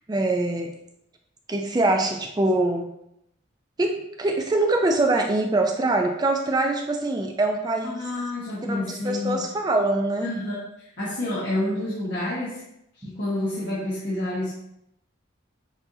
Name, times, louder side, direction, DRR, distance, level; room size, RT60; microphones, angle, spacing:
voice 1, 0.1-0.7 1.5-2.9 3.8-8.0 8.7-10.3 13.0-13.1, right 2 dB, 20° right, 3 dB, 0.3 m, -23 dB
voice 2, 7.8-9.4 10.2-10.6 11.0-12.6 13.0-14.5, left 1 dB, 60° left, -10 dB, 1.3 m, -28 dB
6.8 x 2.7 x 2.7 m, 0.79 s
head